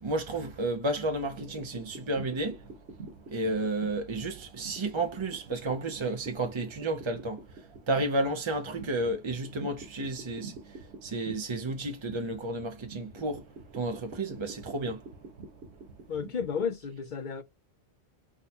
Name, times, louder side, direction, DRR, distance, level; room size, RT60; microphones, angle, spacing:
voice 1, 0.0-2.6 3.3-13.4 13.7-15.0, right 2 dB, 35° right, 0.5 m, -32 dB
sound 1, 1.4-16.6, right 4 dB, 85° right, 1.5 m, -47 dB
voice 2, 16.1-17.4, left 6 dB, 60° left, 0.6 m, -32 dB
5.7 x 2.2 x 2.8 m
omnidirectional pair, 1.1 m